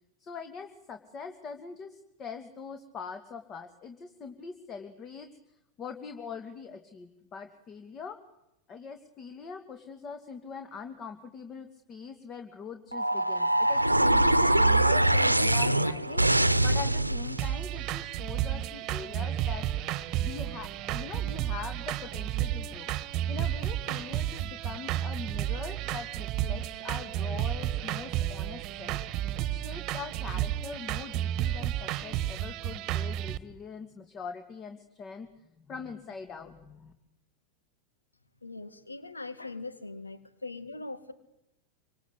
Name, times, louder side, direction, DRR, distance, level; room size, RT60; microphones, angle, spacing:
voice 1, 0.2-5.3 5.8-8.2 8.7-19.7 20.2-22.9 23.3-29.0 29.4-35.3 35.6-36.9, left 5 dB, 25° left, 7 dB, 2.5 m, -42 dB
sound 1, 12.9-17.5, right 1 dB, 85° right, 1.1 m, -23 dB
sound 2, 17.4-33.4, right 12 dB, 35° right, 1.5 m, -32 dB
voice 2, 38.4-41.1, left 3 dB, 80° left, 12 dB, 2.3 m, -41 dB
28.0 x 25.5 x 8.3 m, 0.88 s
figure-of-eight pair, 90°, 0 cm